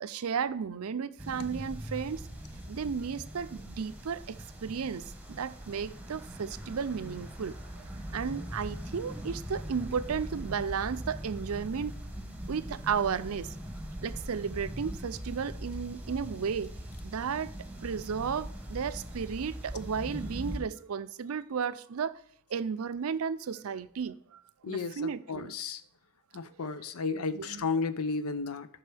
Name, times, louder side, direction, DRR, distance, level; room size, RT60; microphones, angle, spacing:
voice 1, 0.0-2.2 2.7-12.0 12.5-13.6 14.0-16.7 17.0-17.5 17.8-22.2 22.5-25.5 26.6-26.9 27.3-27.7, right 6 dB, 75° right, 0.5 m, -34 dB
sound 1, 1.2-20.6, equal, 5° right, 1.3 m, -41 dB
voice 2, 24.6-25.8 26.3-28.7, left 4 dB, 80° left, 0.6 m, -33 dB
13.5 x 6.0 x 3.4 m
head